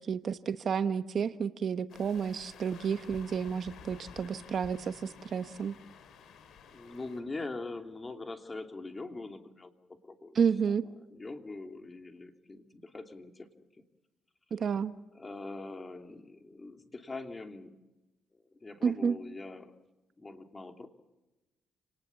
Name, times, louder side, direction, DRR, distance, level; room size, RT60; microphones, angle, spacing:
voice 1, 0.1-5.7 10.3-10.8 14.5-14.9 18.8-19.2, right 6 dB, 55° right, 12 dB, 1.1 m, -31 dB
sound 1, 1.9-7.2, left 7 dB, 75° left, 3.8 m, -52 dB
voice 2, 6.7-10.4 10.7-10.8 11.1-13.5 15.1-17.8 18.3-19.8 20.2-20.9, left 3 dB, 25° left, 6 dB, 2.9 m, -43 dB
29.5 x 19.5 x 7.3 m, 1.0 s
cardioid pair, 90°, 0 cm